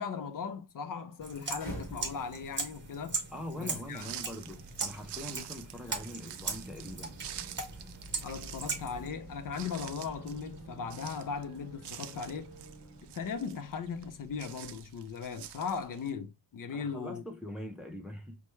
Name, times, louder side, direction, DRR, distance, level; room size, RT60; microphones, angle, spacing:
voice 1, 0.0-3.2 3.6-4.1 8.2-12.5 13.1-17.2, left 6 dB, 55° left, 0.5 m, -38 dB
sound 1, 1.2-9.1, right 4 dB, 30° right, 0.8 m, -39 dB
sound 2, 1.5-13.5, right 1 dB, 30° left, 2.1 m, -50 dB
voice 2, 3.3-7.2 16.7-18.4, left 1 dB, ahead, 0.5 m, -43 dB
sound 3, 3.9-16.1, right 11 dB, 90° right, 0.5 m, -48 dB
5.6 x 2.2 x 3.0 m
wide cardioid pair, 175°, 40 cm